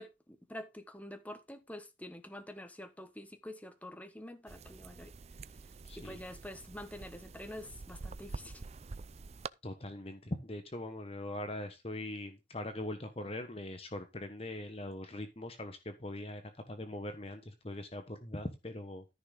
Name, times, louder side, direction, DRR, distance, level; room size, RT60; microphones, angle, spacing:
voice 1, 0.0-5.1 6.0-8.5, left 1 dB, 10° left, 1.4 m, -47 dB
sound 1, 4.5-9.5, right 4 dB, 35° right, 0.4 m, -47 dB
voice 2, 5.8-6.2 9.6-19.0, left 1 dB, 35° left, 1.2 m, -41 dB
14.0 x 6.1 x 3.9 m
head